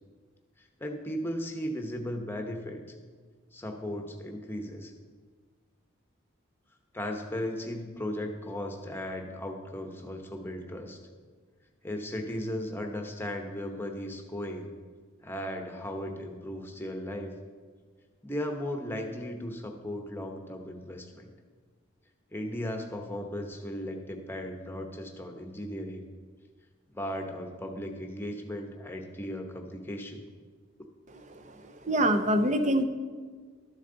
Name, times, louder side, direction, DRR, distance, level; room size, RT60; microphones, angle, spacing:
voice 1, 0.6-3.0 3.5-4.9 6.9-11.0 11.8-14.7 15.2-17.3 18.2-21.3 22.3-26.0 26.9-30.2, left 1 dB, 10° left, 3 dB, 0.9 m, -36 dB
voice 2, 31.8-32.8, right 1 dB, 35° right, 8 dB, 0.6 m, -24 dB
12.5 x 7.2 x 3.9 m, 1.5 s
head